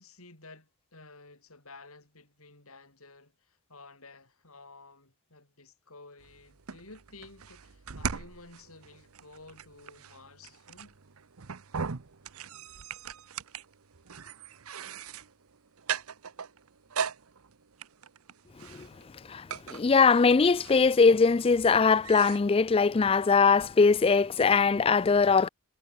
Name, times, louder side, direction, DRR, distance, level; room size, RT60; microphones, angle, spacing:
voice 1, 0.0-11.0, left 3 dB, 75° left, 8.0 m, -52 dB
sound 1, 6.2-22.4, right 6 dB, 75° right, 0.9 m, -40 dB
voice 2, 19.7-25.5, left 5 dB, 25° left, 0.3 m, -21 dB
head